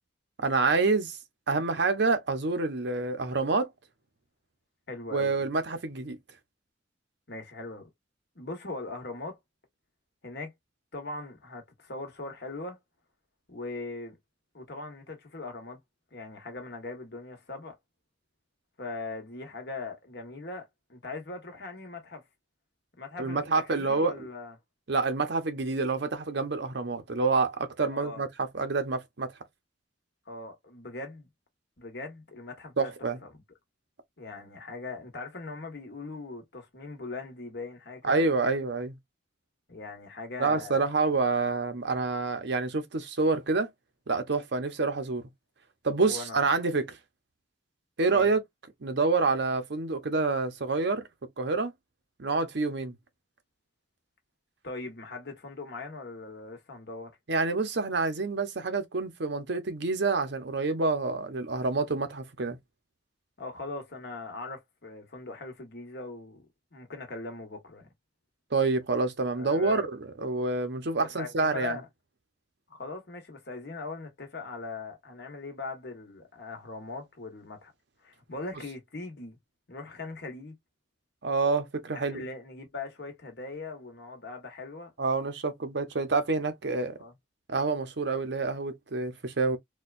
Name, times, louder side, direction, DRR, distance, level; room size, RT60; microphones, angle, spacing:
voice 1, 0.4-1.2 1.5-3.7 5.1-6.2 23.2-24.3 24.9-29.3 32.8-33.2 38.0-38.9 40.4-43.7 44.1-45.2 45.8-47.0 48.0-48.4 48.8-51.0 51.4-51.7 52.2-52.9 57.3-62.6 68.5-69.9 70.2-71.8 81.2-82.2 85.0-87.0 87.5-89.6, right 3 dB, 60° right, 0.7 m, -27 dB
voice 2, 4.9-5.4 7.3-7.9 8.3-9.4 10.2-10.5 10.9-12.8 13.5-14.2 14.5-15.8 16.1-17.7 18.8-22.2 23.0-24.5 27.9-28.2 30.3-31.3 31.8-33.3 34.2-38.3 39.7-40.9 46.0-46.4 48.1-48.3 54.6-57.1 63.4-66.4 66.7-67.9 69.4-69.9 71.2-71.9 72.7-77.7 78.0-79.4 79.7-80.6 81.9-84.9 87.0-87.1, left 3 dB, 55° left, 1.4 m, -40 dB
4.3 x 2.3 x 2.5 m
head